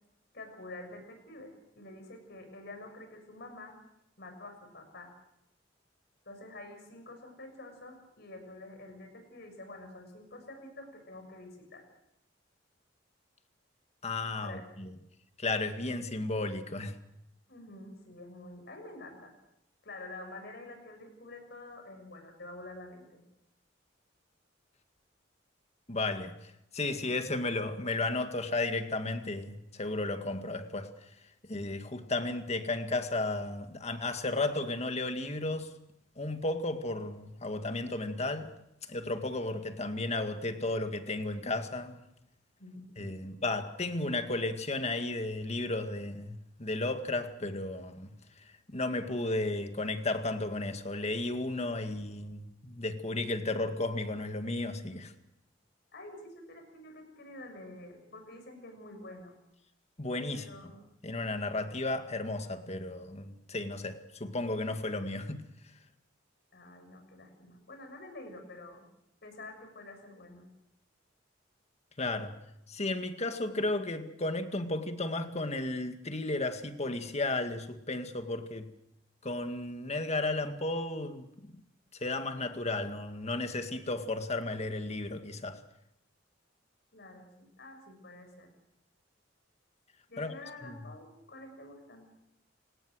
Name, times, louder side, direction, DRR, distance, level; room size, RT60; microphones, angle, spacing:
voice 1, 0.3-3.8 4.2-5.1 6.2-11.9 14.4-14.7 17.5-19.3 19.8-23.2 42.6-43.4 55.9-59.4 60.3-60.8 66.5-68.9 69.2-70.5 86.9-88.5 90.1-92.1, left 2 dB, 60° left, 6.5 m, -48 dB
voice 2, 14.0-14.9 15.4-17.0 25.9-30.9 31.5-35.7 36.2-38.5 38.9-42.0 43.0-55.1 60.0-60.5 61.0-65.5 72.0-72.4 72.7-78.7 79.2-81.6 81.9-85.6 90.2-90.3 90.6-90.8, left 2 dB, 35° left, 2.0 m, -34 dB
28.5 x 18.0 x 6.4 m
head